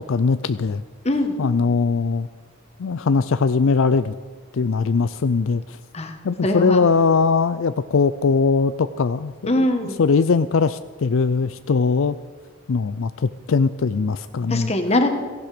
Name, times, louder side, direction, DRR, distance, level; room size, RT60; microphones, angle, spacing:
voice 1, 0.1-0.8 1.4-2.3 2.8-4.1 4.5-5.8 6.2-9.7 10.0-12.2 12.7-14.7, left 4 dB, 70° left, 13 dB, 0.4 m, -20 dB
voice 2, 6.4-6.8 9.5-10.0 14.5-15.1, left 1 dB, 30° left, 6 dB, 1.5 m, -21 dB
17.0 x 15.5 x 5.1 m, 1.5 s
head